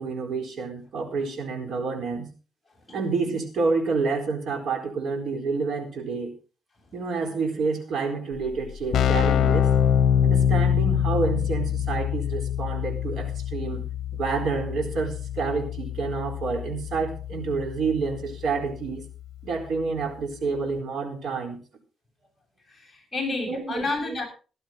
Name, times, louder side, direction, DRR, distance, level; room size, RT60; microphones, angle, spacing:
voice 1, 0.0-2.3 2.9-6.3 6.9-9.7 10.2-13.8 14.1-19.1 19.4-21.6 23.5-24.2, right 4 dB, 65° right, 4 dB, 4.3 m, -28 dB
Keyboard (musical), 8.3-8.4 8.6-19.3, left 9 dB, 75° left, 0.7 m, -25 dB
voice 2, 22.7-24.2, left 3 dB, 10° left, 0 dB, 7.4 m, -30 dB
17.5 x 12.0 x 3.9 m, 0.35 s
cardioid pair, 120°, 0 cm